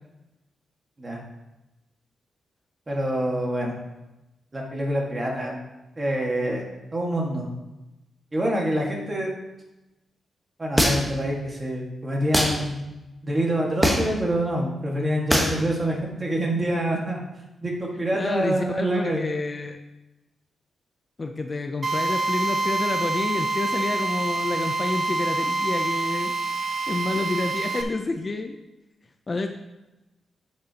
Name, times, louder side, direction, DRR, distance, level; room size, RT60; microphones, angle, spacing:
voice 1, 2.9-3.7 4.5-5.6 6.0-6.7 6.9-7.5 8.3-9.3 10.6-12.8 13.2-17.2 17.6-19.2, right 1 dB, 25° right, -1 dB, 1.6 m, -26 dB
sound 1, 10.8-11.2 12.3-12.6 13.8-14.2 15.3-15.6, equal, 5° right, 1.1 m, -20 dB
voice 2, 18.1-19.8 21.2-26.3 26.9-28.6 29.3-29.5, left 3 dB, 30° left, 5 dB, 0.5 m, -29 dB
Drill, 21.8-27.8, right 3 dB, 40° right, 0.8 m, -26 dB
11.0 x 6.4 x 2.9 m, 1.0 s
wide cardioid pair, 135°, 0 cm